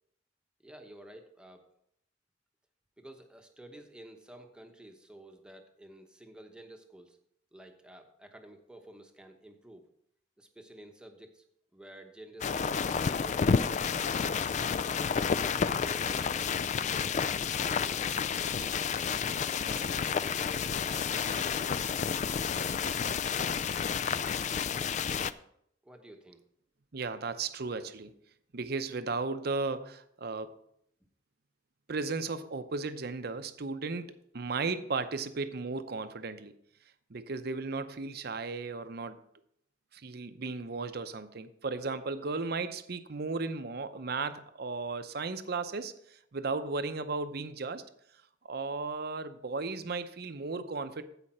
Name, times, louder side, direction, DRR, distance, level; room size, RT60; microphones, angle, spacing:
voice 1, 0.6-1.6 3.0-7.2 7.5-9.9 10.4-11.4 11.7-12.5 13.0-14.0 14.5-16.3 16.7-18.1 18.5-18.8 19.3-21.9 25.8-26.4, right 1 dB, 5° right, 4 dB, 1.0 m, -51 dB
sound 1, 12.4-25.3, left 6 dB, 40° left, 0.3 m, -30 dB
voice 2, 26.9-28.1 28.5-30.6 31.9-36.6 37.1-39.2 39.9-47.9 48.4-51.0, right 4 dB, 60° right, 10 dB, 0.7 m, -35 dB
15.0 x 5.1 x 4.3 m, 0.71 s
head